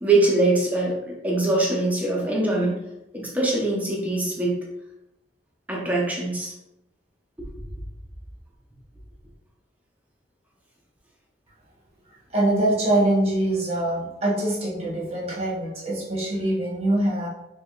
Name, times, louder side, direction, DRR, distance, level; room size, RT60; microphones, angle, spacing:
voice 1, 0.0-2.8 3.1-4.5 5.7-6.5 7.4-7.7, right 2 dB, 10° right, -4 dB, 0.7 m, -23 dB
voice 2, 12.3-17.3, right 1 dB, 35° right, -5 dB, 1.0 m, -23 dB
3.4 x 3.3 x 2.3 m, 0.88 s
head